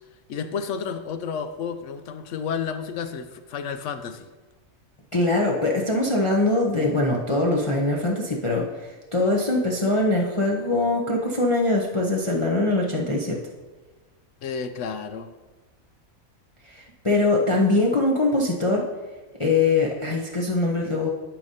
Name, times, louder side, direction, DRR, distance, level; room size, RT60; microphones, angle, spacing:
voice 1, 0.3-4.3 14.4-15.3, left 6 dB, 65° left, 9 dB, 0.9 m, -31 dB
voice 2, 5.1-13.4 16.6-18.9 19.4-21.1, left 2 dB, 30° left, -2 dB, 0.6 m, -22 dB
11.5 x 5.1 x 2.7 m, 1.2 s
omnidirectional pair, 1.5 m